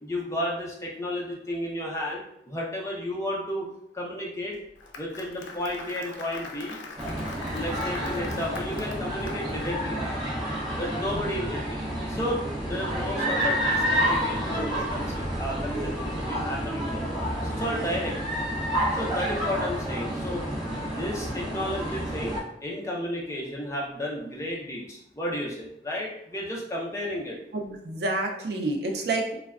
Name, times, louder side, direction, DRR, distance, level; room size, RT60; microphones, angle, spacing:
voice 1, 0.0-3.7 3.9-4.6 5.0-6.8 7.5-10.0 10.8-17.0 17.4-18.2 18.9-20.5 20.8-27.4, left 1 dB, 15° left, -3 dB, 0.4 m, -33 dB
Applause, 4.5-9.7, left 3 dB, 90° left, 0.4 m, -42 dB
sound 1, 7.0-22.4, equal, 25° right, 0.6 m, -29 dB
voice 2, 27.5-29.4, right 2 dB, 65° right, 2 dB, 0.4 m, -28 dB
3.3 x 2.1 x 2.3 m, 0.76 s
head